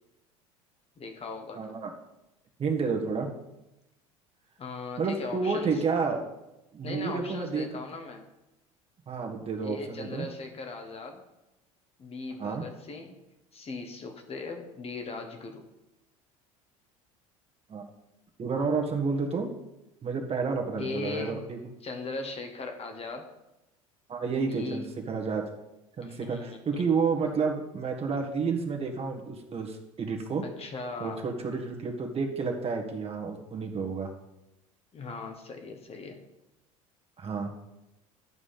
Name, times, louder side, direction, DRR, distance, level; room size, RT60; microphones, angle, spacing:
voice 1, 1.0-1.8 4.6-5.8 6.8-8.2 9.6-11.2 12.0-13.2 13.5-15.6 20.8-21.5 21.8-23.3 24.4-24.9 26.0-26.8 30.4-31.3 34.9-36.2, left 3 dB, 35° left, 5 dB, 1.4 m, -39 dB
voice 2, 1.6-1.9 2.6-3.3 5.0-6.3 6.7-7.7 9.1-10.3 12.4-12.6 17.7-17.8 18.4-19.5 20.0-21.6 24.1-25.4 26.0-30.4 31.0-34.1 37.2-37.5, right 5 dB, 35° right, 2 dB, 1.7 m, -30 dB
11.0 x 4.9 x 5.8 m, 0.94 s
hypercardioid pair, 75°, 18 cm